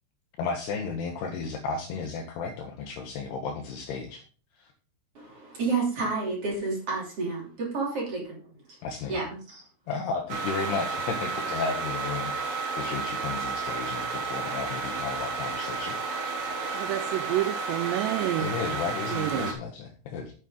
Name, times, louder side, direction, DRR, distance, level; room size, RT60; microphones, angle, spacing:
voice 1, 0.4-4.2 4.6-4.7 8.8-9.2 9.9-16.0 18.4-20.3, left 5 dB, 75° left, 4 dB, 2.5 m, -33 dB
voice 2, 5.1-8.4 9.1-9.6, right 4 dB, 35° right, -2 dB, 3.1 m, -30 dB
sound 1, 10.3-19.5, right 4 dB, 60° right, 2.6 m, -32 dB
voice 3, 16.7-18.5 19.1-19.5, right 14 dB, 90° right, 10 dB, 2.4 m, -29 dB
9.2 x 8.2 x 3.8 m, 0.40 s
omnidirectional pair, 5.6 m